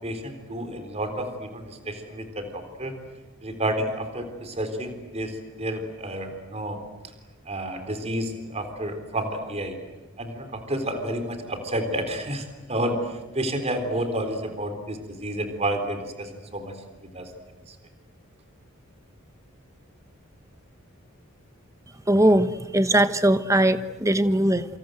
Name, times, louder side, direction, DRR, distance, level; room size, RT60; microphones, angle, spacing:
voice 1, 0.0-3.0 3.4-6.8 7.5-9.8 10.2-16.8 17.0-17.3 17.7-17.8, right 1 dB, 30° right, 7 dB, 3.9 m, -30 dB
voice 2, 22.1-24.7, right 1 dB, 15° right, 11 dB, 1.1 m, -20 dB
28.0 x 27.0 x 7.9 m, 1.2 s
head